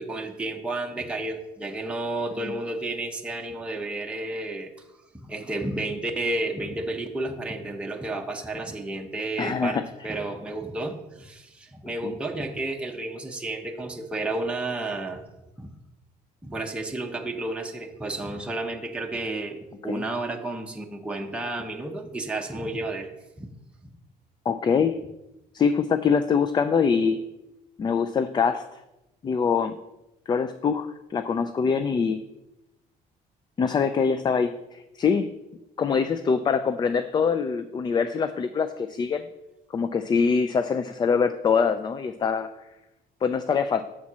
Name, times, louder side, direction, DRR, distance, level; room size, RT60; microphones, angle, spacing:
voice 1, 0.0-4.7 5.1-15.2 15.6-15.7 16.4-23.1 23.4-23.5, right 2 dB, 5° right, 1 dB, 0.8 m, -31 dB
voice 2, 9.4-9.8 12.0-12.1 19.9-20.0 24.5-25.0 25.5-27.3 27.8-28.8 29.2-29.8 30.3-32.2 33.6-35.3 35.8-39.2 39.7-42.5 43.2-43.8, left 6 dB, 25° left, 11 dB, 0.3 m, -24 dB
7.3 x 4.1 x 6.1 m, 0.95 s
cardioid pair, 110°, 17 cm